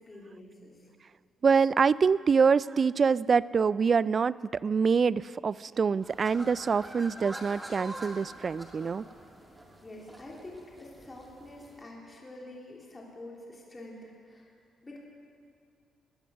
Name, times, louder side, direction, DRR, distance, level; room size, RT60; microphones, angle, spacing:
voice 1, 0.1-0.8 9.8-14.5 14.8-15.0, left 1 dB, 20° left, -3 dB, 3.2 m, -47 dB
voice 2, 1.4-9.1, right 5 dB, 40° right, 19 dB, 0.3 m, -25 dB
sound 1, 6.0-11.8, right 1 dB, 15° right, 2.1 m, -46 dB
18.5 x 11.0 x 6.3 m, 2.3 s
cardioid pair, 90°, 0 cm